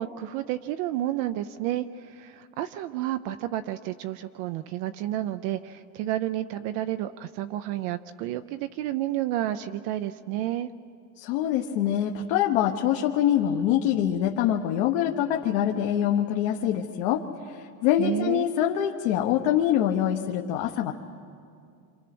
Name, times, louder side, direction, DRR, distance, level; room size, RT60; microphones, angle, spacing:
voice 1, 0.0-10.7 18.0-18.5, right 13 dB, 40° right, 10 dB, 0.5 m, -30 dB
voice 2, 11.2-17.2 17.8-20.9, left 11 dB, 55° left, 1 dB, 1.3 m, -24 dB
28.0 x 26.5 x 6.1 m, 2.3 s
supercardioid pair, 150°, 43 cm